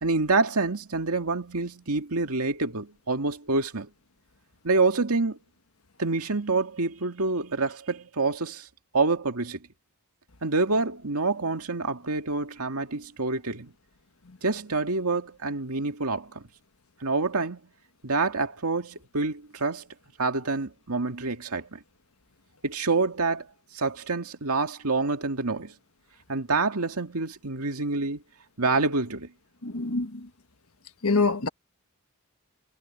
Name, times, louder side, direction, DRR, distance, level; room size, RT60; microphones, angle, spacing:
voice 1, 0.0-3.9 4.6-5.4 6.0-8.7 8.9-9.6 10.4-13.7 14.4-16.4 17.0-17.6 18.0-19.9 20.2-21.8 22.6-23.5 23.7-25.7 26.3-28.2 28.6-29.3, right 3 dB, 85° right, 2.1 m, -27 dB
voice 2, 29.6-30.3 31.0-31.5, left 3 dB, 70° left, 1.5 m, -25 dB
head